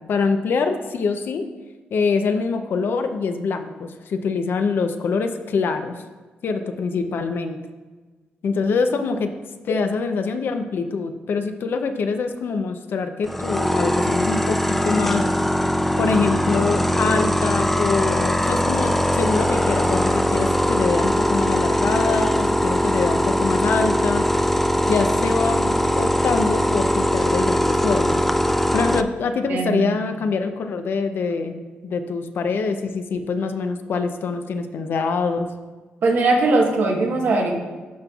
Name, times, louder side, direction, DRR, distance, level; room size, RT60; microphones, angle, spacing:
voice 1, 0.0-1.5 1.9-6.0 6.4-7.6 8.4-9.3 9.6-15.2 16.0-24.3 24.8-28.2 28.7-31.6 31.8-35.5, left 4 dB, 65° left, 7 dB, 0.6 m, -24 dB
sound 1, 13.3-29.0, equal, 5° left, 0.4 m, -21 dB
voice 2, 29.5-30.0 36.0-37.5, right 3 dB, 65° right, 0 dB, 1.3 m, -20 dB
12.5 x 5.3 x 2.4 m, 1.3 s
cardioid pair, 80°, 4 cm